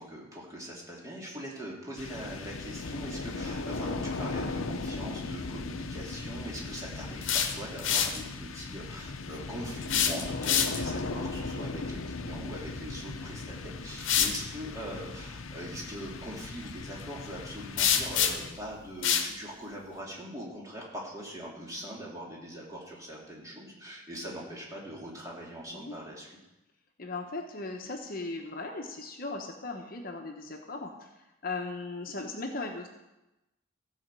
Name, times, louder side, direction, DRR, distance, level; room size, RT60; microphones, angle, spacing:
voice 1, 0.0-26.3, equal, 15° right, -3 dB, 2.6 m, -42 dB
sound 1, 2.0-18.9, left 3 dB, 80° left, 0.8 m, -38 dB
sound 2, 7.0-8.2 9.8-11.0 13.1-13.2 14.0-14.4 17.8-18.6 19.0-19.3, left 8 dB, 65° left, 1.1 m, -27 dB
voice 2, 27.0-31.1 31.4-32.9, left 3 dB, 45° left, 2 dB, 1.1 m, -38 dB
15.0 x 5.0 x 7.5 m, 0.97 s
head